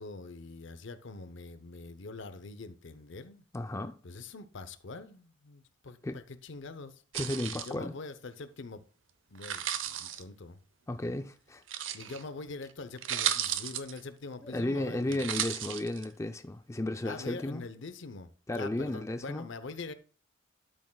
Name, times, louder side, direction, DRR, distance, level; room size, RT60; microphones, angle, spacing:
voice 1, 0.0-3.4 4.0-7.0 7.5-8.8 9.3-10.6 11.0-11.2 11.9-15.3 17.0-19.9, left 3 dB, 65° left, 0.7 m, -44 dB
voice 2, 3.5-4.0 6.0-6.2 7.1-7.9 10.9-11.6 14.4-17.6 18.5-19.5, left 1 dB, 15° left, 0.4 m, -34 dB
sound 1, 7.1-7.7 9.4-10.2 11.7-12.2 12.7-12.8 13.0-14.0 15.1-16.1, right 10 dB, 70° right, 0.7 m, -34 dB
12.5 x 6.3 x 2.3 m
head